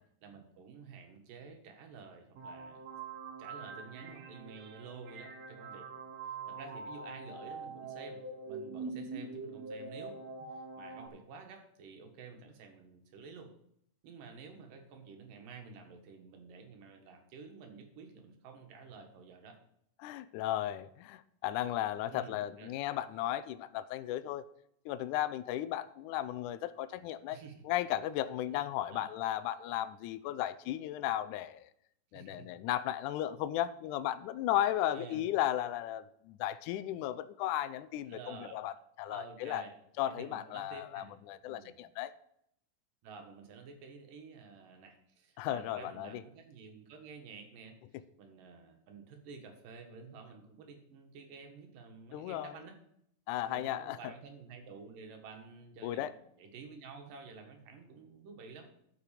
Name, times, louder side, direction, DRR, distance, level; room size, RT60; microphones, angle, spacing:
voice 1, 0.2-2.8 3.4-5.9 6.5-13.5 14.0-19.6 22.1-22.7 27.3-27.5 28.6-29.1 32.1-32.5 34.9-35.3 38.1-38.6 39.1-39.7 40.1-41.8 43.0-47.8 48.2-52.8 53.5-58.7, right 5 dB, 90° right, 4 dB, 3.2 m, -51 dB
sound 1, 2.4-11.1, right 4 dB, 65° right, 1.8 m, -44 dB
voice 2, 20.0-24.5 24.9-27.4 27.7-31.7 32.1-39.6 40.0-42.1 45.4-46.2 52.1-52.5 53.3-54.1 55.8-56.1, left 13 dB, 80° left, 13 dB, 1.9 m, -35 dB
13.0 x 6.1 x 5.0 m, 0.73 s
omnidirectional pair, 3.8 m